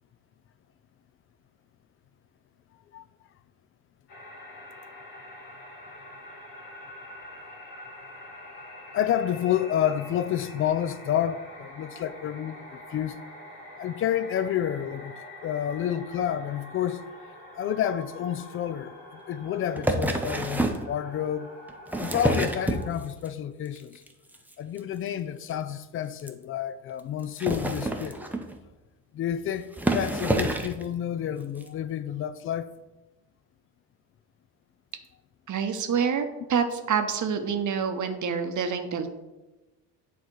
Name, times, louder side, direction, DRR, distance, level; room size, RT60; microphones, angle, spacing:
sound 1, 4.1-22.9, left 1 dB, 75° left, 1.4 m, -45 dB
voice 1, 8.9-13.2 13.8-17.0 17.6-19.0 19.3-21.5 22.0-24.0 24.6-28.2 29.1-32.7, left 10 dB, 30° left, 0.3 m, -29 dB
sound 2, 19.8-20.9 21.7-23.3 23.7-24.1 24.3-24.5 24.8-24.9 25.1-25.2 25.5-25.6 26.2-26.3 27.2-28.6 29.3-29.4 29.7-30.8 31.6-31.7, right 1 dB, 5° right, 0.7 m, -27 dB
voice 2, 35.5-39.1, right 6 dB, 40° right, 0.9 m, -27 dB
9.1 x 3.4 x 4.5 m
figure-of-eight pair, 50°, 49 cm